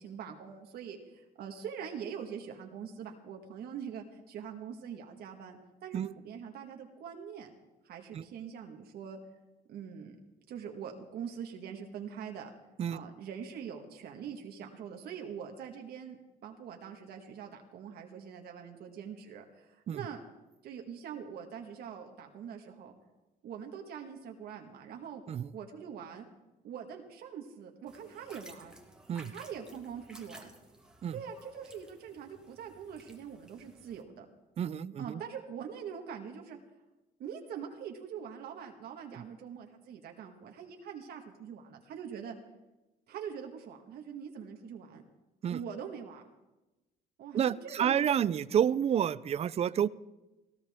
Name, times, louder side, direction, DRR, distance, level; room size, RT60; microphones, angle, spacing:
voice 1, 0.0-7.5 7.8-9.2 9.7-10.2 10.5-12.5 12.9-20.2 20.6-22.9 23.4-25.2 25.5-26.3 26.6-28.7 29.3-30.5 31.1-34.3 35.0-36.6 37.2-42.4 43.1-45.0 45.5-46.2 47.2-48.1, right 7 dB, 70° right, 3 dB, 1.7 m, -43 dB
sound 1, 27.9-34.0, right 1 dB, 5° right, 1.8 m, -55 dB
voice 2, 34.6-35.2 39.2-39.3 45.4-45.6 47.3-49.9, right 9 dB, 40° right, 18 dB, 0.5 m, -29 dB
18.5 x 15.5 x 3.6 m, 1.0 s
cardioid pair, 110°, 17 cm